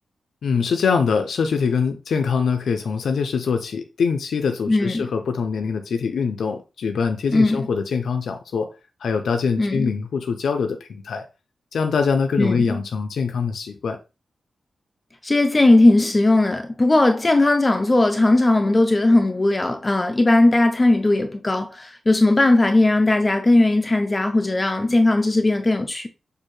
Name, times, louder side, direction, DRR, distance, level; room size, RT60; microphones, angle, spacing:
voice 1, 0.4-8.7 9.0-11.3 11.7-14.0, left 5 dB, 90° left, 0.5 m, -23 dB
voice 2, 4.7-5.1 7.3-7.7 9.6-9.9 12.4-12.8 15.2-26.1, left 2 dB, 20° left, 0.4 m, -18 dB
6.6 x 2.5 x 3.1 m
wide cardioid pair, 150°, 0 cm